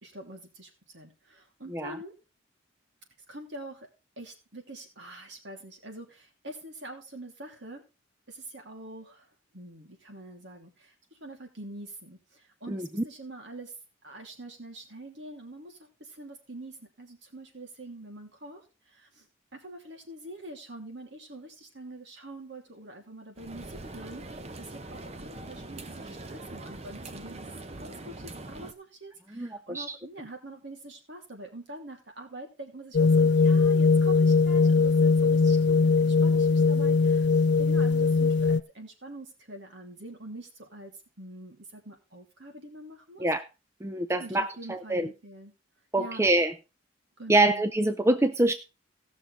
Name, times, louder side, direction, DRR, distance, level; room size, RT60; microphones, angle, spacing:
voice 1, 0.0-2.1 3.3-3.9 4.2-7.8 8.3-9.3 9.5-13.7 14.0-19.3 19.5-24.3 24.6-43.2 44.2-45.5 46.0-46.2 47.2-47.6, right 1 dB, 60° right, 2 dB, 2.9 m, -45 dB
voice 2, 12.7-13.0 29.3-30.0 43.2-43.5 43.8-45.1 45.9-46.5 47.3-48.5, right 2 dB, 15° right, 9 dB, 0.5 m, -25 dB
sound 1, 23.4-28.7, right 2 dB, 30° right, 0.8 m, -42 dB
sound 2, 32.9-38.6, left 4 dB, 60° left, 0.5 m, -21 dB
17.5 x 6.3 x 4.0 m, 0.28 s
head